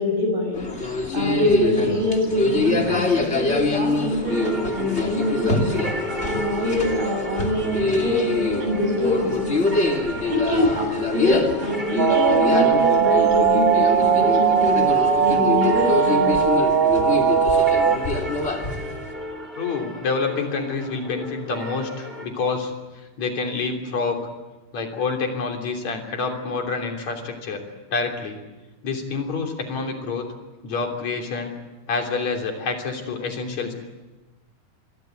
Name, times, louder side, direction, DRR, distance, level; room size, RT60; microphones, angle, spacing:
voice 1, 0.0-5.8 6.2-9.8 10.3-14.8 15.2-16.3, left 1 dB, 80° right, 3 dB, 9.3 m, -25 dB
sound 1, 0.5-19.1, left 3 dB, 20° left, 2.7 m, -25 dB
sound 2, 4.3-22.3, left 1 dB, 15° right, 3.7 m, -34 dB
sound 3, 12.0-18.0, right 6 dB, 45° right, 2.3 m, -18 dB
voice 2, 19.6-22.7 23.2-24.2 24.7-27.6 27.9-28.4 28.8-30.3 30.6-31.5 31.9-33.7, left 4 dB, 50° left, 3 dB, 4.2 m, -27 dB
27.5 x 23.5 x 8.1 m, 1.1 s
omnidirectional pair, 4.4 m